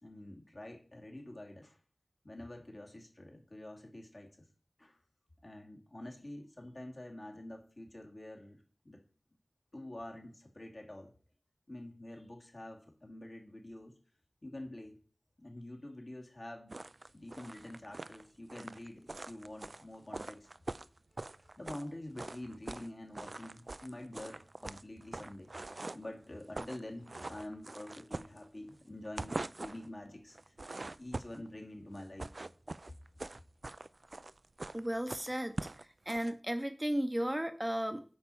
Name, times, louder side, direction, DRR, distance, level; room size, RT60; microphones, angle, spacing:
voice 1, 0.0-1.8 2.2-4.5 4.8-5.0 5.4-9.0 9.7-11.1 11.7-13.9 14.4-15.0 15.4-16.7 17.1-20.5 21.1-25.5 25.9-30.4 31.0-32.3, left 1 dB, 55° left, 0 dB, 2.5 m, -47 dB
sound 1, 16.7-21.9 22.2-22.9 23.2-26.1 26.4-26.8 27.1-28.7 29.1-29.9 30.3-31.5 31.9-36.3, right 2 dB, 65° right, 0.3 m, -43 dB
voice 2, 34.7-38.0, equal, 15° right, 8 dB, 0.7 m, -35 dB
8.5 x 4.4 x 7.0 m, 0.41 s
wide cardioid pair, 50°, 0 cm